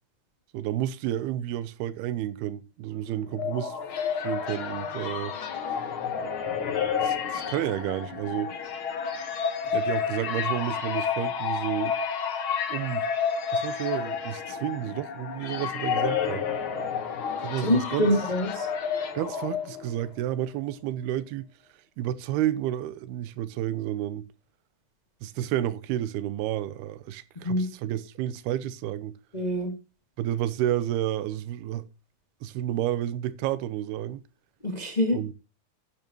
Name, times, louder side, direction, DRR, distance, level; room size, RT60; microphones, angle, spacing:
voice 1, 0.5-3.8 4.2-5.3 7.0-8.6 9.7-12.0 12.7-13.1 13.5-16.5 17.4-18.1 19.1-21.5 22.0-24.3 25.2-29.1 30.2-31.9 32.4-34.2 35.1-35.3, right 12 dB, 90° right, 2.8 m, -31 dB
sound 1, 3.1-20.1, left 7 dB, 60° left, 1.4 m, -30 dB
voice 2, 17.6-18.7 27.4-27.7 29.3-29.7 34.6-35.2, left 1 dB, 20° left, 1.0 m, -25 dB
10.5 x 10.5 x 3.0 m
omnidirectional pair, 4.4 m